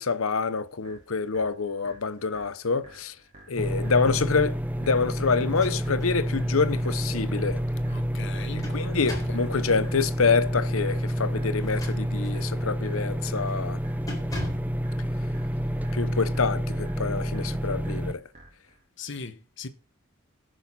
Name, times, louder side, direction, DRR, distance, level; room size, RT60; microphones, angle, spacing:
voice 1, 0.0-3.1 3.5-7.6 8.7-13.8 15.9-18.2, left 4 dB, 75° left, 0.9 m, -26 dB
sound 1, 0.8-18.8, right 1 dB, 35° right, 3.7 m, -53 dB
sound 2, 3.6-18.1, equal, 5° right, 0.5 m, -29 dB
sound 3, 5.4-6.2 6.6-6.7 8.1-9.5 11.5-12.4 12.9-13.2 13.5-13.7 14.1-14.8, left 1 dB, 15° left, 3.7 m, -40 dB
voice 2, 7.9-8.7 9.0-9.4 19.0-19.7, left 4 dB, 55° left, 1.1 m, -39 dB
18.5 x 6.5 x 4.2 m
head